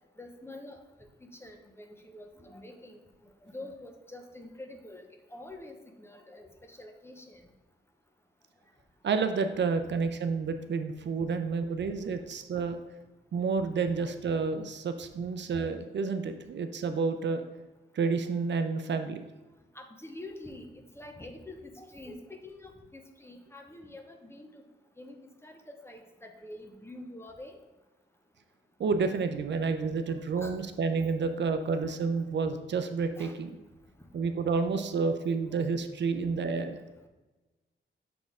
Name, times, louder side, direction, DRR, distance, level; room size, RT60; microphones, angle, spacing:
voice 1, 0.2-0.8 1.2-3.0 3.4-7.4 19.7-24.6 25.0-25.2 25.4-27.6 29.8-30.1 30.4-30.6 31.6-32.0 33.2-33.4 34.7-35.1 35.5-35.7, left 1 dB, 10° left, 4 dB, 0.7 m, -46 dB
voice 2, 9.0-12.8 13.3-17.4 17.9-19.2 28.8-33.5 34.1-36.8, right 4 dB, 65° right, 8 dB, 0.5 m, -30 dB
6.7 x 4.1 x 3.6 m, 1.2 s
wide cardioid pair, 125°, 20 cm